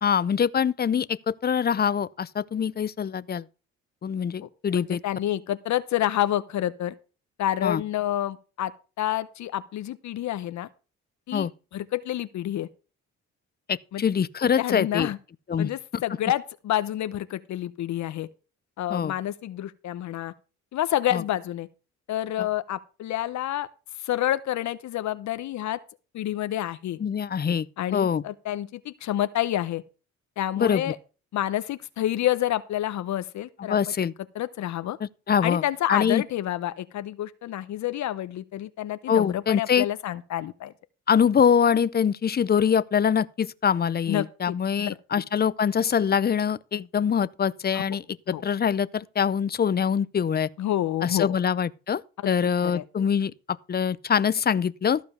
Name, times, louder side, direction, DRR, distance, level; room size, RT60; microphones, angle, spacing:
voice 1, 0.0-3.4 4.0-5.0 7.6-7.8 11.3-11.5 13.7-15.1 15.5-16.0 18.9-19.1 21.1-21.2 27.0-27.7 27.9-28.2 30.6-30.8 33.7-34.1 35.3-35.6 35.9-36.2 39.1-39.9 41.1-48.0 48.4-50.5 51.0-55.0, left 7 dB, 30° left, 0.6 m, -24 dB
voice 2, 4.4-6.9 7.4-8.7 9.0-10.7 11.3-12.7 13.9-14.0 14.6-15.2 15.6-18.3 18.8-20.3 20.7-21.7 22.1-23.7 24.0-25.8 26.1-27.0 27.8-29.8 30.4-31.0 31.3-34.0 34.3-35.0 35.4-40.7 44.1-44.6 47.7-47.8 48.3-48.4 50.6-51.3 52.2-52.3 52.6-52.8, left 13 dB, 70° left, 0.8 m, -28 dB
14.0 x 5.1 x 6.4 m
cardioid pair, 90°, 30 cm